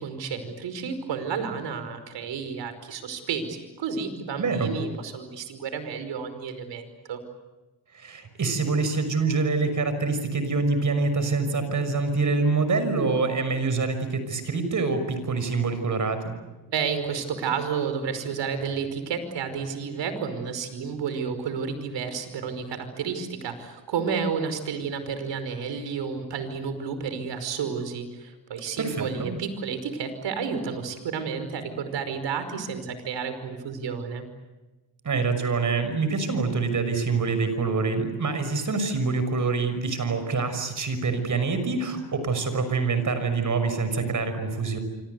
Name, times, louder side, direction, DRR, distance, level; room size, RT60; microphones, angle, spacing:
voice 1, 0.0-7.2 16.7-34.3, right 6 dB, 65° right, 10 dB, 5.3 m, -31 dB
voice 2, 4.4-4.8 7.9-16.3 28.8-29.4 35.0-44.8, right 4 dB, 40° right, 10 dB, 6.1 m, -26 dB
27.0 x 25.5 x 8.2 m, 1.1 s
cardioid pair, 90°, 46 cm